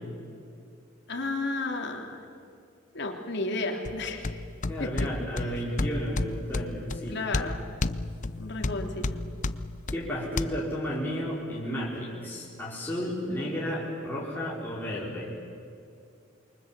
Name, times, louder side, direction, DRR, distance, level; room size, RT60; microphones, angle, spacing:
voice 1, 1.1-2.2 2.9-4.4 4.8-5.1 7.1-7.6 8.4-9.2, left 2 dB, 60° left, 2 dB, 3.1 m, -32 dB
sound 1, 3.8-10.4, left 2 dB, 40° left, 0.7 m, -32 dB
voice 2, 4.7-7.3 9.9-15.3, equal, 10° left, -6 dB, 4.6 m, -33 dB
28.0 x 24.0 x 7.6 m, 2.5 s
head